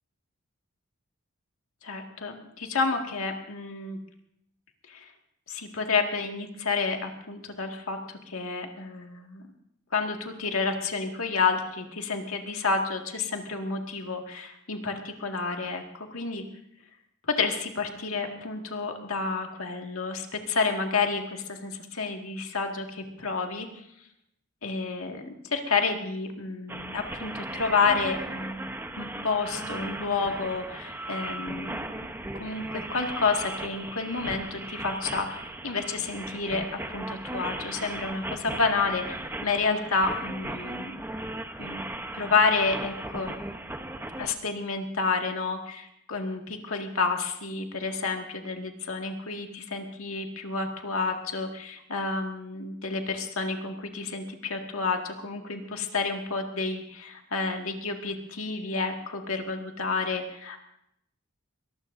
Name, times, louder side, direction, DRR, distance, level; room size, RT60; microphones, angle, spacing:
voice 1, 1.8-4.0 4.9-5.1 5.5-9.5 9.9-16.4 17.3-23.7 24.6-31.8 32.3-40.9 41.6-41.8 42.1-43.4 44.2-60.6, left 4 dB, 75° left, 3 dB, 2.0 m, -30 dB
sound 1, 26.7-44.3, right 1 dB, 10° right, 0.9 m, -37 dB
23.0 x 19.0 x 2.7 m, 0.75 s
head